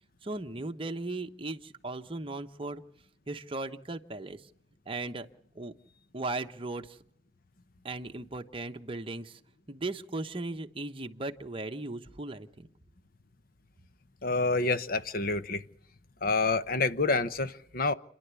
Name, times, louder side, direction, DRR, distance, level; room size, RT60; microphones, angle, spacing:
voice 1, 0.2-2.8 3.3-4.4 4.9-5.3 5.6-5.7 6.1-6.9 7.8-9.4 9.7-12.7, right 2 dB, 30° right, 1.1 m, -37 dB
voice 2, 14.2-15.6 16.2-17.9, left 3 dB, 50° left, 0.9 m, -28 dB
29.5 x 11.0 x 8.3 m
head